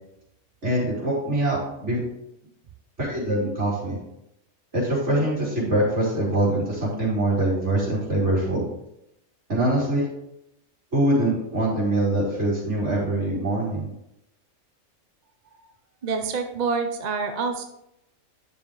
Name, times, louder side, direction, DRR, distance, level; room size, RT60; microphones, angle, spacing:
voice 1, 0.6-2.0 3.0-3.9 4.7-8.6 9.5-10.1 10.9-13.9, right 1 dB, 60° right, -7 dB, 4.2 m, -23 dB
voice 2, 16.0-17.6, right 4 dB, 45° right, 6 dB, 0.6 m, -27 dB
10.5 x 7.1 x 3.2 m, 0.82 s
omnidirectional pair, 1.4 m